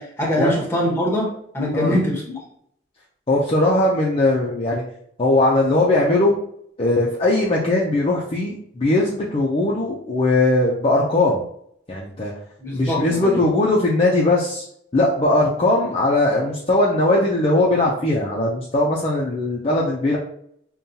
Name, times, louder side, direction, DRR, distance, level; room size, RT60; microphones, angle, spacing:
voice 1, 0.0-2.4 12.6-13.4 15.8-15.9, left 1 dB, 15° left, -2 dB, 1.0 m, -23 dB
voice 2, 3.3-4.8 5.2-6.4 6.8-11.4 11.9-12.3 12.7-14.7 14.9-20.2, left 2 dB, 30° left, -4 dB, 0.5 m, -19 dB
5.4 x 2.3 x 2.7 m, 0.69 s
head